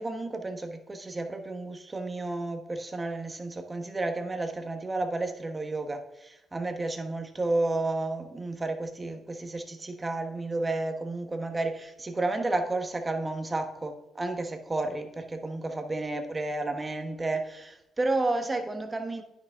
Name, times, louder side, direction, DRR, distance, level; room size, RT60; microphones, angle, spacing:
voice 1, 0.0-19.2, right 2 dB, 20° right, 1.1 m, -31 dB
9.6 x 6.0 x 3.6 m
cardioid pair, 90°, 0 cm